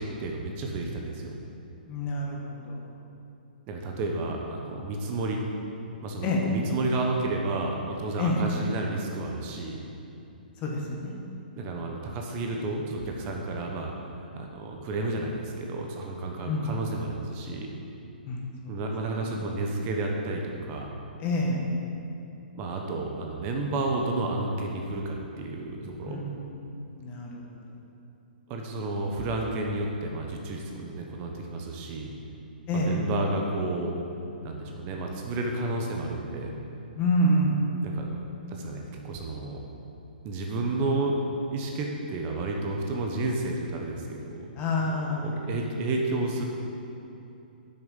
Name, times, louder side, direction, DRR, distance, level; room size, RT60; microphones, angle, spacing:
voice 1, 0.0-1.3 3.7-5.4 6.0-9.8 11.6-13.9 14.3-17.7 18.7-21.0 22.5-26.2 28.5-32.1 32.7-33.9 34.4-36.5 37.8-38.1 38.5-39.6 40.2-41.2 41.5-46.4, right 2 dB, 30° right, 1 dB, 1.2 m, -31 dB
voice 2, 1.9-2.8 6.2-6.4 8.2-8.4 10.6-11.1 16.4-16.7 18.3-18.4 18.6-18.8 19.4-19.6 21.2-21.6 26.1-26.5 26.9-27.4 32.7-33.0 37.0-37.6 44.6-45.4, left 1 dB, 30° left, -1 dB, 1.8 m, -27 dB
8.6 x 6.5 x 7.3 m, 2.8 s
hypercardioid pair, 130°, 5 cm